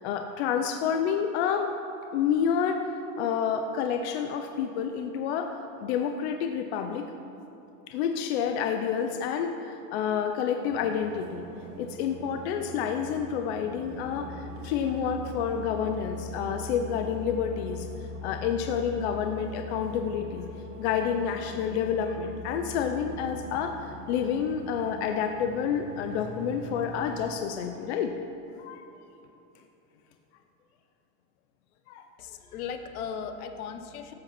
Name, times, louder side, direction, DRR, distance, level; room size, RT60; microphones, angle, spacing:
voice 1, 0.0-1.7 2.1-2.9 3.2-5.5 5.8-7.0 7.9-11.4 11.8-17.9 18.2-20.5 20.8-28.1 28.6-28.8 31.9-32.0, left 7 dB, 45° left, 5 dB, 0.7 m, -29 dB
sound 1, 10.6-27.3, left 1 dB, 55° right, 3.3 m, -42 dB
voice 2, 32.2-34.1, left 7 dB, 70° left, 8 dB, 1.3 m, -37 dB
13.5 x 8.8 x 5.9 m, 2.9 s
supercardioid pair, 170°, 46 cm